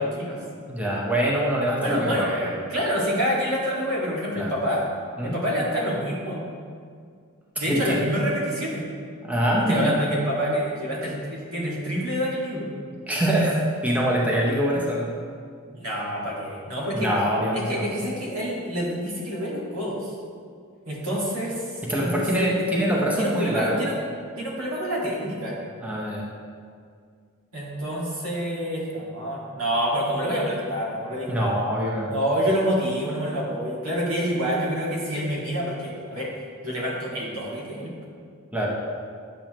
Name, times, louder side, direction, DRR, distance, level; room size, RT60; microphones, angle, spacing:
voice 1, 0.7-2.5 4.4-4.5 5.2-5.3 7.7-8.0 9.2-9.9 13.1-15.1 16.9-17.9 21.9-23.8 25.8-26.2 31.3-32.1 38.5-38.7, equal, 5° right, -4 dB, 0.8 m, -24 dB
voice 2, 1.8-4.8 5.2-6.5 7.6-8.9 9.7-12.7 15.7-17.1 17.5-20.1 20.9-21.6 22.0-22.5 23.2-24.0 24.4-25.6 27.5-31.6 32.1-36.3 36.6-37.9, equal, 80° right, -5 dB, 1.9 m, -27 dB
8.5 x 7.0 x 3.0 m, 2.1 s
head